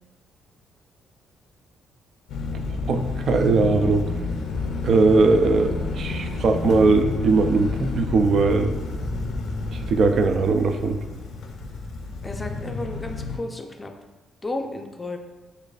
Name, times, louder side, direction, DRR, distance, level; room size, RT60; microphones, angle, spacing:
sound 1, 2.3-13.4, left 3 dB, 75° left, 0.5 m, -30 dB
voice 1, 2.9-4.1 4.8-8.8 9.7-11.0, right 3 dB, 60° right, 6 dB, 0.3 m, -20 dB
voice 2, 12.2-13.9 14.4-15.2, left 2 dB, 20° left, 4 dB, 0.4 m, -33 dB
6.4 x 2.5 x 2.4 m, 1.2 s
cardioid pair, 90°, 0 cm